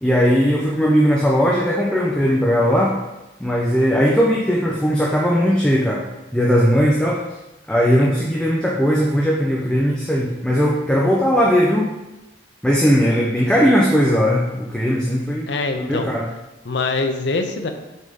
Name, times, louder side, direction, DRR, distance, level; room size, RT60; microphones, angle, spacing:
voice 1, 0.0-2.9 3.4-6.0 6.3-7.2 7.7-11.9 12.6-15.5 15.8-16.3, equal, 5° left, -4 dB, 0.6 m, -18 dB
voice 2, 15.5-16.1 16.6-17.7, left 3 dB, 70° left, 6 dB, 0.7 m, -23 dB
6.3 x 3.6 x 5.5 m, 1.0 s
head